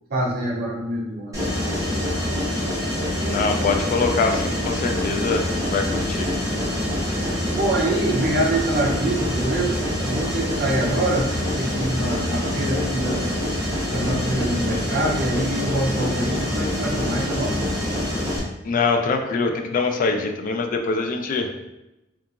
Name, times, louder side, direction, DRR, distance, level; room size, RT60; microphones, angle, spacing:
voice 1, 0.1-1.5 3.2-3.4 7.4-13.2 13.7-17.5, right 1 dB, 50° right, -2 dB, 0.5 m, -25 dB
Mechanisms, 1.3-18.4, left 1 dB, 15° right, 0.8 m, -25 dB
voice 2, 3.3-6.3 18.6-21.6, left 4 dB, 45° left, 4 dB, 0.3 m, -24 dB
2.8 x 2.3 x 2.4 m, 0.94 s
head